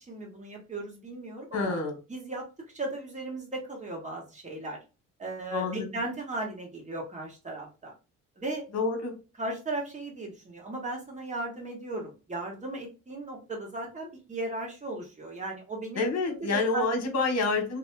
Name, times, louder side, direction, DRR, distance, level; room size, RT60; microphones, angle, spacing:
voice 1, 0.1-1.8 2.1-2.4 2.7-4.8 5.2-7.9 8.4-8.6 9.4-16.9, right 2 dB, 25° right, -1 dB, 1.4 m, -36 dB
voice 2, 1.5-2.0 5.5-5.9 8.7-9.1 16.0-17.8, left 3 dB, 60° left, 5 dB, 1.2 m, -28 dB
3.0 x 2.8 x 2.3 m, 0.31 s
cardioid pair, 90°, 30 cm